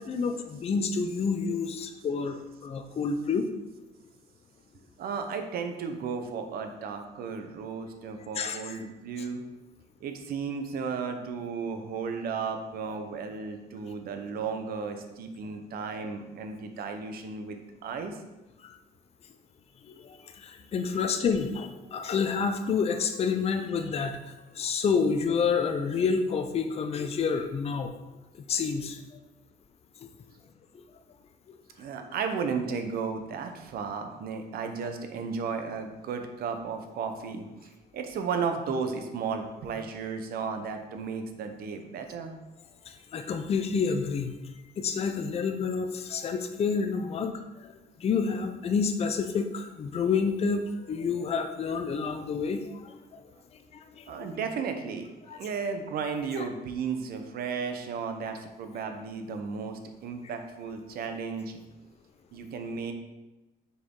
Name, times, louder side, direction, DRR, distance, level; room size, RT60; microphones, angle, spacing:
voice 1, 0.0-3.5 8.4-8.6 18.6-18.8 19.8-27.9 28.5-29.0 30.7-30.8 42.9-44.3 44.8-47.7 48.0-53.2 54.0-54.4 55.3-55.4 56.4-56.5, left 5 dB, 35° left, 6 dB, 0.6 m, -29 dB
voice 2, 5.0-9.4 10.0-18.2 20.9-21.0 31.8-42.3 54.1-55.1 55.3-61.6 62.3-62.9, right 5 dB, 65° right, 6 dB, 0.9 m, -34 dB
6.9 x 4.7 x 3.8 m, 1.0 s
cardioid pair, 110°, 17 cm